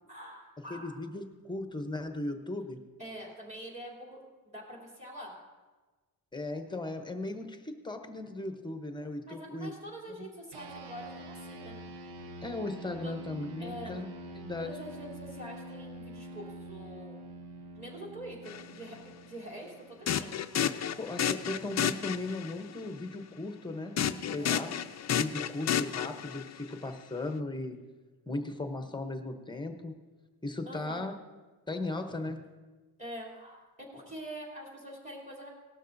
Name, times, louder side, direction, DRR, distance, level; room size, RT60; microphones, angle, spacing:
voice 1, 0.0-0.9 3.0-4.2 4.4-5.4 9.2-11.8 13.0-13.1 13.6-14.0 14.6-17.2 17.7-20.3 24.4-24.7 30.7-31.1 33.0-35.5, right 1 dB, 20° right, -3 dB, 3.2 m, -45 dB
voice 2, 0.7-2.8 6.3-9.7 10.1-10.3 12.4-14.1 14.3-14.7 21.0-24.8 25.2-27.8 28.3-30.0 30.4-31.1 31.7-32.4, left 2 dB, 10° left, 5 dB, 0.8 m, -37 dB
sound 1, 10.5-20.2, right 1 dB, 85° right, 1.0 m, -46 dB
sound 2, 18.5-18.6 20.1-22.5 24.0-26.6, left 9 dB, 45° left, 0.5 m, -31 dB
18.5 x 12.5 x 2.6 m, 1.3 s
wide cardioid pair, 155°, 39 cm